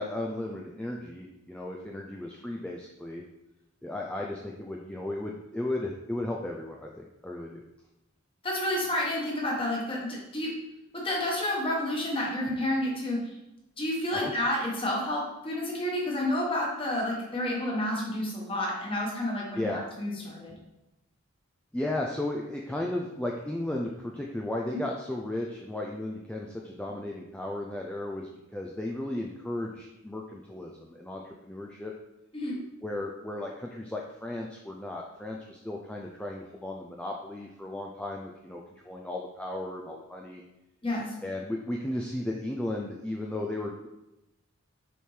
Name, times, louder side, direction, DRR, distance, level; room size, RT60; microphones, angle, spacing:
voice 1, 0.0-3.2 3.8-7.6 14.1-14.3 19.5-19.8 21.7-31.9 32.8-40.4 41.2-43.9, left 1 dB, 5° left, -1 dB, 0.3 m, -35 dB
voice 2, 8.4-10.5 10.9-13.2 13.8-20.5 32.3-32.6 40.8-41.1, left 1 dB, 25° left, -3 dB, 1.3 m, -30 dB
6.6 x 4.4 x 3.3 m, 0.95 s
head